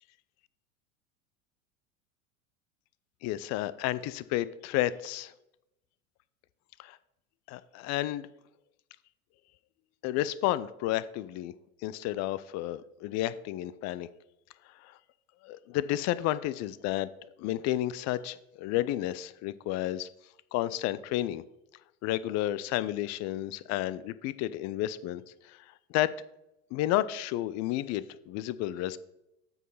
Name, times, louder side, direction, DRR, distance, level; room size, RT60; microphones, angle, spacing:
voice 1, 3.2-5.3 6.8-7.0 7.5-8.3 10.0-11.5 11.8-14.1 14.8-15.0 15.4-17.1 17.4-20.1 20.5-21.4 22.0-25.2 25.5-25.6 25.9-26.1 26.7-29.0, left 14 dB, 40° left, 16 dB, 0.5 m, -31 dB
8.0 x 4.7 x 5.6 m, 0.88 s
hypercardioid pair, 80°, 41 cm